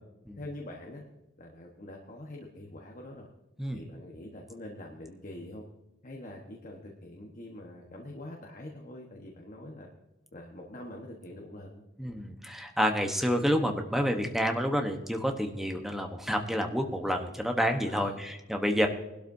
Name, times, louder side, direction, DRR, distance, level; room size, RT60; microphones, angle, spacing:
voice 1, 0.4-1.0 1.4-3.3 3.7-5.6 6.0-9.9 10.3-11.8 17.9-18.2, left 1 dB, 40° left, 0 dB, 1.2 m, -44 dB
voice 2, 12.0-18.9, equal, ahead, 4 dB, 1.0 m, -29 dB
20.0 x 12.0 x 2.7 m, 0.98 s
head